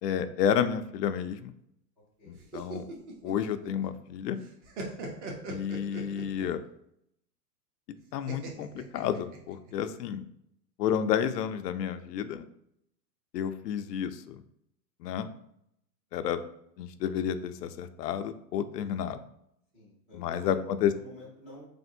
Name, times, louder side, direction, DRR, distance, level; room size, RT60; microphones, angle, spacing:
voice 1, 0.0-1.5 2.3-2.9 3.2-4.4 5.5-6.6 8.1-10.2 10.8-12.5 13.3-14.4 15.0-15.3 16.1-16.4 16.8-19.2 20.1-20.9, left 8 dB, 75° left, 10 dB, 0.5 m, -30 dB
sound 1, 2.4-4.1 4.4-6.6 8.3-9.7, right 2 dB, 45° right, 0.9 m, -40 dB
voice 2, 19.7-21.7, left 1 dB, 10° right, -9 dB, 0.4 m, -48 dB
3.9 x 3.5 x 2.6 m, 0.74 s
hypercardioid pair, 145°, 49 cm